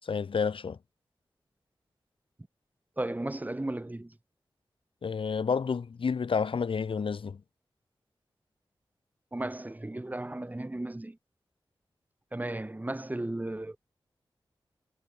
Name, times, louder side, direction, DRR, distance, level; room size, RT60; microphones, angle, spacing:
voice 1, 0.0-0.8 5.0-7.4, left 5 dB, 85° left, 7.1 m, -30 dB
voice 2, 3.0-4.1 9.3-11.2 12.3-13.8, right 1 dB, 20° right, 6.3 m, -35 dB
wide cardioid pair, 100°, 9 cm